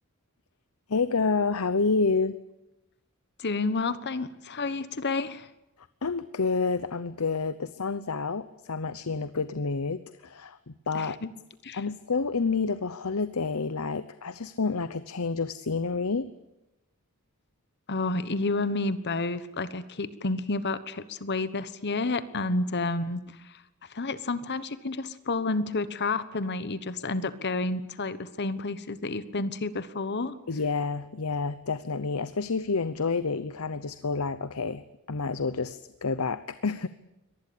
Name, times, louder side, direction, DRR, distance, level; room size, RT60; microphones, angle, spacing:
voice 1, 0.9-2.3 6.0-11.2 11.7-16.3 30.5-34.8 35.1-36.9, left 4 dB, 80° left, 14 dB, 0.9 m, -29 dB
voice 2, 3.4-5.5 10.9-11.3 11.6-11.8 17.9-23.2 23.9-30.4, left 3 dB, 50° left, 14 dB, 1.2 m, -30 dB
24.0 x 19.0 x 8.7 m, 0.94 s
head